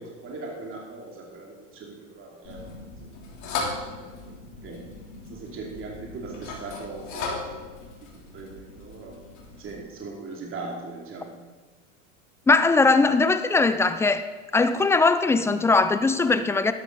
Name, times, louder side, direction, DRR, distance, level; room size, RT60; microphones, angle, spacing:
voice 1, 0.0-2.7 4.0-4.8 5.2-7.7 8.1-9.2 9.5-11.3, right 3 dB, 30° right, -2 dB, 2.8 m, -39 dB
sound 1, 2.4-9.8, left 3 dB, 45° left, 3.3 m, -37 dB
voice 2, 12.5-14.3 14.5-16.7, left 3 dB, 5° left, 11 dB, 0.3 m, -20 dB
13.0 x 11.5 x 4.0 m, 1.3 s
hypercardioid pair, 110°, 39 cm